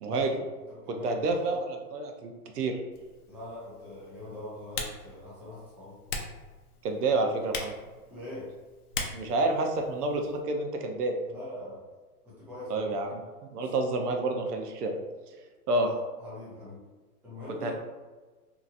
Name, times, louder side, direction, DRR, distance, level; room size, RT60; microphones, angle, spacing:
voice 1, 0.0-0.4 0.9-2.8 6.8-7.7 9.1-11.1 12.7-13.2 13.5-15.0 15.7-15.9 17.6-17.7, right 2 dB, 80° right, 4 dB, 0.7 m, -29 dB
voice 2, 0.7-1.6 3.3-5.9 8.1-8.5 11.3-11.8 12.2-13.0 13.6-13.7 15.8-16.8 17.2-17.7, left 1 dB, 5° right, -9 dB, 0.4 m, -43 dB
Typing, 2.9-10.4, left 4 dB, 75° left, 0.7 m, -41 dB
2.8 x 2.6 x 2.5 m, 1.3 s
hypercardioid pair, 125°, 46 cm